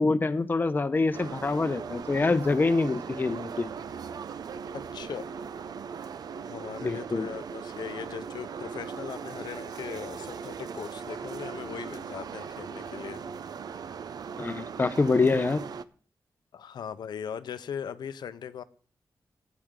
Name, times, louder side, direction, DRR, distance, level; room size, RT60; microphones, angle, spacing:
voice 1, 0.0-3.7 6.8-7.3 14.4-15.6, left 3 dB, 25° left, 10 dB, 0.8 m, -25 dB
sound 1, 1.1-15.8, right 6 dB, 65° right, 0.6 m, -39 dB
voice 2, 4.7-5.3 6.3-13.2 16.5-18.6, left 8 dB, 85° left, 12 dB, 0.7 m, -39 dB
15.0 x 9.5 x 3.7 m, 0.41 s
wide cardioid pair, 130°, 7 cm